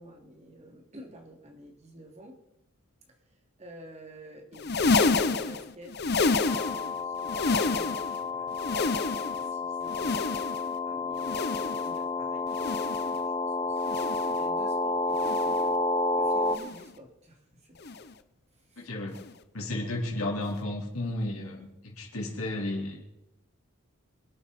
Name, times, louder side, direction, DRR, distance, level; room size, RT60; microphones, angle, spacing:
voice 1, 0.0-2.4 3.1-10.4 10.8-15.8 16.1-17.8 18.5-19.0, equal, 30° right, 2 dB, 2.8 m, -50 dB
sound 1, 4.5-6.9 7.2-8.2 8.5-9.5 9.9-10.7 11.2-11.9 12.5-13.2 13.8-14.4 15.1-15.7 16.5-16.9 17.8-18.1 19.1-19.3 20.5-20.6, left 3 dB, 45° left, 0.8 m, -29 dB
sound 2, 6.5-16.6, left 3 dB, 15° left, 0.8 m, -30 dB
voice 2, 18.8-19.2 19.5-23.1, left 1 dB, 75° left, -1 dB, 4.0 m, -33 dB
26.5 x 8.8 x 4.3 m, 0.91 s
head